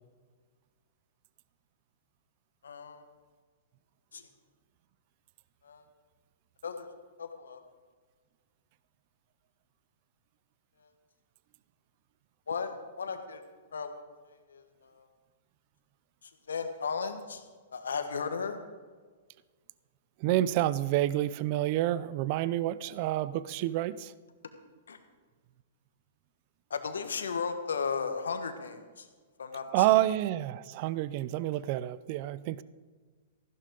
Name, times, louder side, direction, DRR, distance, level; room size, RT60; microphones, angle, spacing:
voice 1, 2.6-3.0 4.1-4.3 5.6-5.8 6.6-6.9 7.2-7.6 10.8-10.9 12.5-13.4 13.7-14.0 14.3-15.1 16.2-17.4 17.7-18.6 24.9-25.0 26.7-29.1 29.4-29.8, left 5 dB, 85° left, 1.4 m, -35 dB
voice 2, 20.2-24.1 29.7-32.6, right 14 dB, 45° right, 0.5 m, -28 dB
14.5 x 12.0 x 3.9 m
hypercardioid pair, 125°, 0 cm